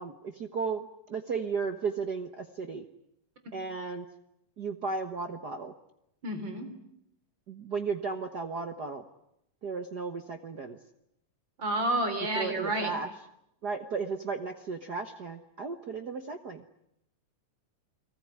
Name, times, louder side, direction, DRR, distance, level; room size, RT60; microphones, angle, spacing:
voice 1, 0.0-2.8 3.5-4.1 4.6-5.7 7.5-9.0 9.6-10.8 12.3-13.1 13.6-16.6, right 4 dB, 55° right, 7 dB, 1.1 m, -34 dB
voice 2, 6.2-6.7 11.6-12.9, right 1 dB, 35° right, 8 dB, 4.0 m, -30 dB
30.0 x 20.0 x 9.6 m, 0.79 s
omnidirectional pair, 3.6 m